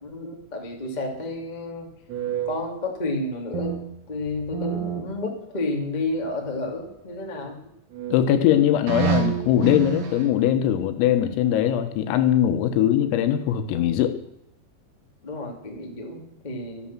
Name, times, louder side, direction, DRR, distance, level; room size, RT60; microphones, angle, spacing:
voice 1, 0.0-1.9 2.4-3.8 4.1-7.6 15.2-16.9, left 2 dB, 20° left, 1 dB, 1.1 m, -31 dB
sound 1, 2.1-3.8 4.1-5.7 6.4-7.3 7.9-8.3 8.9-10.3, right 9 dB, 85° right, 4.6 m, -30 dB
voice 2, 8.1-14.2, left 10 dB, 85° left, 8 dB, 4.0 m, -21 dB
12.5 x 12.0 x 7.4 m, 0.78 s
omnidirectional pair, 5.9 m